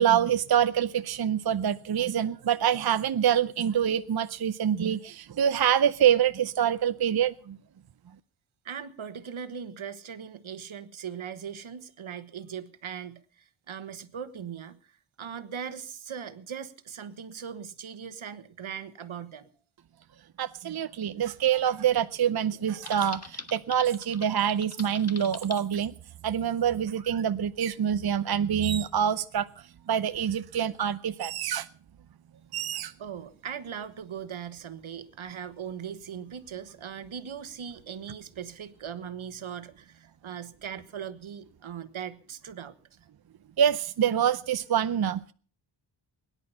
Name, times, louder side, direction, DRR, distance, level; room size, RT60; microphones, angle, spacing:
voice 1, 0.0-7.6 20.4-25.9 26.2-29.5 29.9-31.7 32.5-32.9 43.6-45.3, right 9 dB, 50° right, 0.6 m, -26 dB
voice 2, 8.6-19.5 33.0-42.7, right 8 dB, 75° right, 1.4 m, -39 dB
Typing, 22.9-25.6, left 4 dB, 30° left, 1.4 m, -42 dB
22.0 x 11.0 x 5.6 m
wide cardioid pair, 100°, 48 cm